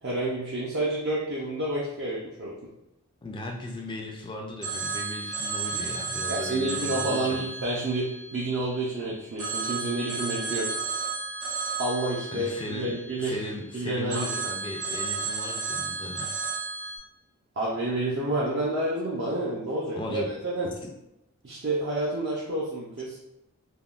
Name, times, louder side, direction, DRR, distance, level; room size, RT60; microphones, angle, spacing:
voice 1, 0.0-2.5 6.3-10.7 11.8-14.3 17.6-20.7 21.4-23.2, right 2 dB, 50° right, -6 dB, 0.5 m, -29 dB
voice 2, 3.2-7.4 12.3-16.3 20.0-20.3, left 1 dB, 20° left, 2 dB, 0.3 m, -37 dB
Telephone, 4.6-8.9 9.4-13.6 14.1-17.0, right 4 dB, 90° right, 1.1 m, -33 dB
3.5 x 2.2 x 2.3 m, 0.88 s
head